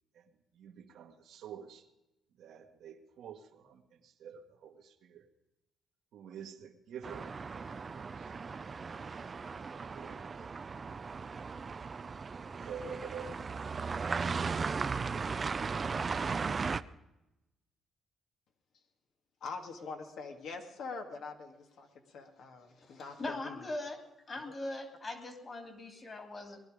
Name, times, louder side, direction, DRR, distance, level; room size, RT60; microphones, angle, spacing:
voice 1, 0.1-1.9 2.3-5.3 6.1-8.3 9.6-10.3 12.3-13.4, right 6 dB, 75° right, 4 dB, 1.7 m, -48 dB
sound 1, 7.0-16.8, right 5 dB, 35° right, 0.5 m, -37 dB
voice 2, 19.4-23.7, left 4 dB, 70° left, 3 dB, 2.3 m, -44 dB
voice 3, 23.2-24.0 24.3-26.6, left 2 dB, 35° left, 6 dB, 3.0 m, -40 dB
20.0 x 11.5 x 5.1 m, 0.95 s
cardioid pair, 85°, 0 cm